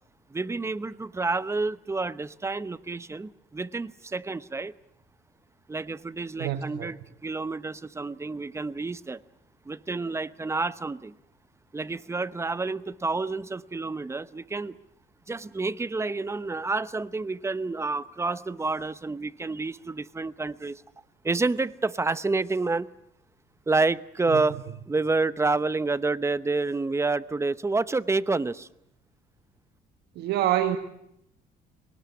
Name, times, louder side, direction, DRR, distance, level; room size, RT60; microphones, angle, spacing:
voice 1, 0.3-4.7 5.7-9.2 9.7-11.1 11.7-14.8 15.3-20.8 21.2-22.9 23.7-24.6 24.9-28.7, right 3 dB, 15° right, 0.8 m, -29 dB
voice 2, 6.4-6.9 24.3-24.4 30.1-30.8, right 12 dB, 75° right, 1.4 m, -26 dB
22.5 x 18.5 x 8.4 m
cardioid pair, 110°, 17 cm